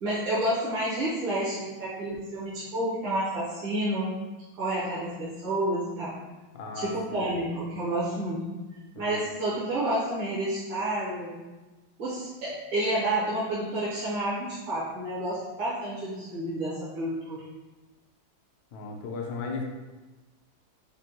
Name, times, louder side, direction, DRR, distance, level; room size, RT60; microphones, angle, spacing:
voice 1, 0.0-4.1 4.6-6.1 6.7-8.4 9.0-11.4 12.0-17.4, right 1 dB, 75° right, -10 dB, 1.7 m, -30 dB
voice 2, 6.5-7.5 8.9-9.2 18.7-19.6, left 4 dB, 75° left, 0 dB, 0.8 m, -36 dB
5.0 x 2.2 x 2.9 m, 1.2 s
omnidirectional pair, 2.2 m